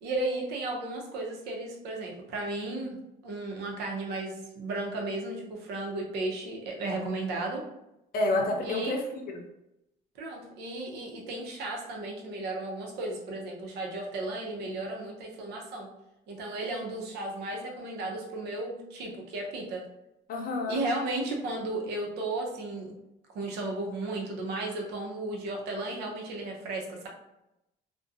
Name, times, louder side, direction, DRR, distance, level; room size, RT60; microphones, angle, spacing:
voice 1, 0.0-3.0 3.2-7.6 8.6-9.0 10.2-15.9 16.3-19.8 20.7-22.9 23.3-27.1, right 2 dB, 80° right, 0 dB, 0.7 m, -34 dB
voice 2, 8.1-9.4 20.3-20.8, left 2 dB, 60° left, 1 dB, 0.6 m, -29 dB
2.4 x 2.2 x 2.6 m, 0.88 s
cardioid pair, 110°, 17 cm